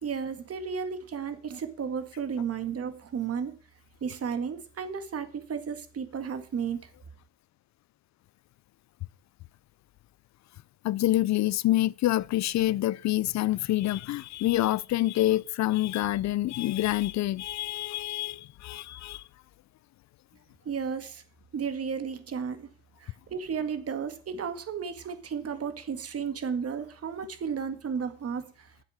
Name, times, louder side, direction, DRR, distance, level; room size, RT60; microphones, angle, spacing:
voice 1, 0.0-3.6 4.0-6.9 20.7-21.2 21.5-22.7 23.0-28.7, right 6 dB, 50° right, 1.9 m, -33 dB
voice 2, 10.8-19.2, left 15 dB, 65° left, 0.5 m, -27 dB
10.0 x 7.5 x 7.4 m
cardioid pair, 90°, 30 cm